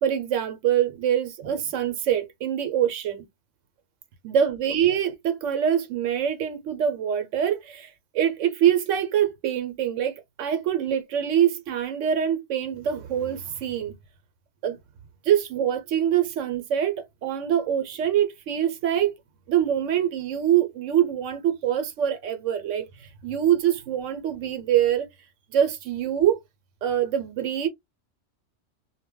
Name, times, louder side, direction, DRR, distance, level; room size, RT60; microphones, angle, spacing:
voice 1, 0.0-3.2 4.2-13.9 14.6-14.8 15.2-19.1 19.5-25.1 25.5-26.4 26.8-27.7, right 10 dB, 80° right, 0.9 m, -24 dB
2.1 x 2.1 x 3.5 m
omnidirectional pair, 1.3 m